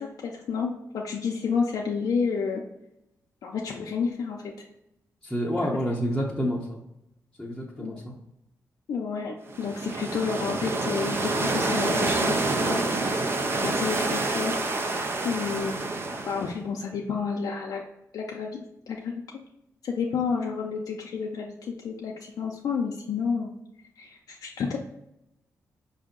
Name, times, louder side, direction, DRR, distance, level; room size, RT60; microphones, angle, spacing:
voice 1, 0.0-2.6 3.4-4.4 5.6-5.7 7.8-8.0 8.9-13.0 13.6-14.7 15.2-15.7 16.3-17.8 18.1-19.2 19.8-23.5 24.0-24.8, left 5 dB, 75° left, -1 dB, 0.5 m, -30 dB
voice 2, 5.2-6.8 7.4-8.1, equal, 5° left, -5 dB, 0.7 m, -28 dB
sound 1, 9.5-16.6, right 2 dB, 40° right, 0.5 m, -27 dB
4.9 x 2.7 x 3.7 m, 0.84 s
cardioid pair, 95°, 6 cm